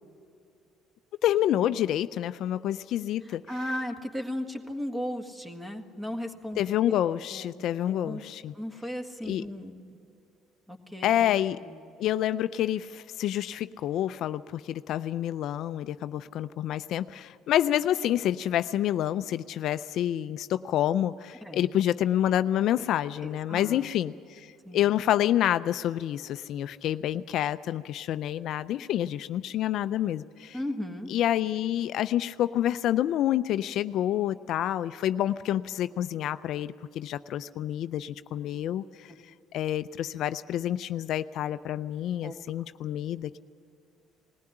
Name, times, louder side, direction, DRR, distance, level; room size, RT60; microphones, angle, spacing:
voice 1, 1.2-3.4 6.6-8.5 9.3-9.4 11.0-11.6 12.0-30.6 31.1-39.1 39.5-43.4, left 12 dB, 65° left, 13 dB, 0.4 m, -28 dB
voice 2, 3.2-6.6 7.3-8.2 8.5-9.8 10.7-11.3 11.6-11.8 21.4-21.7 23.2-23.9 24.6-24.9 30.5-31.1 42.2-42.4, left 1 dB, 10° right, 6 dB, 1.8 m, -36 dB
19.5 x 15.5 x 9.9 m, 2.6 s
cardioid pair, 95°, 0 cm